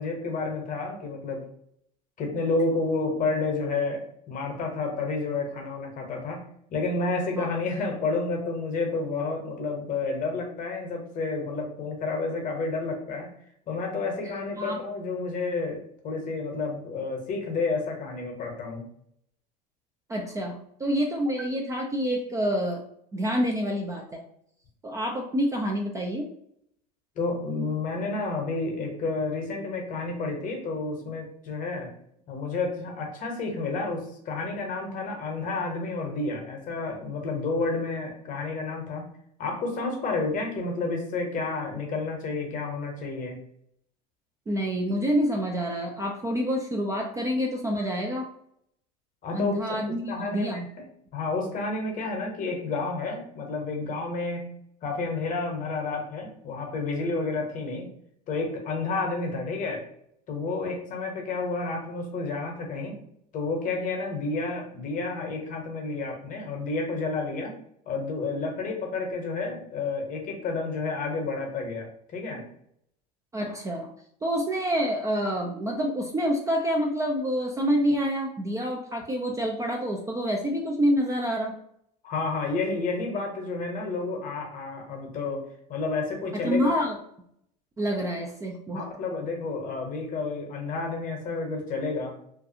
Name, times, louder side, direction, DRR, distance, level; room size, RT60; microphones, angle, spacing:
voice 1, 0.0-1.5 2.2-13.3 13.7-18.8 27.2-31.9 32.3-39.1 39.4-43.4 49.2-50.6 51.1-54.5 54.8-57.9 58.3-59.9 60.3-63.0 63.3-67.6 67.9-72.4 82.0-86.7 88.7-92.2, left 3 dB, 40° left, 2 dB, 0.9 m, -30 dB
voice 2, 20.1-22.8 23.1-24.2 24.8-26.3 44.5-48.3 49.3-50.7 73.3-73.9 74.2-81.5 86.4-87.0 87.8-88.9, equal, 15° right, 0 dB, 0.4 m, -27 dB
2.5 x 2.3 x 2.7 m, 0.70 s
hypercardioid pair, 95°, 21 cm